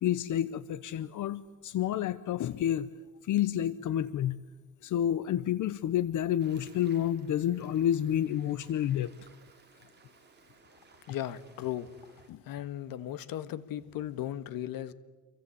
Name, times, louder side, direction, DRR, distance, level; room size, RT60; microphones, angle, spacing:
voice 1, 0.0-2.9 3.2-4.4 4.8-9.1 12.3-12.4, left 11 dB, 55° left, 16 dB, 0.8 m, -29 dB
sound 1, 6.4-12.3, right 5 dB, 30° right, 3.9 m, -60 dB
voice 2, 11.1-14.9, left 12 dB, 70° left, 14 dB, 1.6 m, -37 dB
28.0 x 23.5 x 8.6 m, 1.3 s
cardioid pair, 145°, 36 cm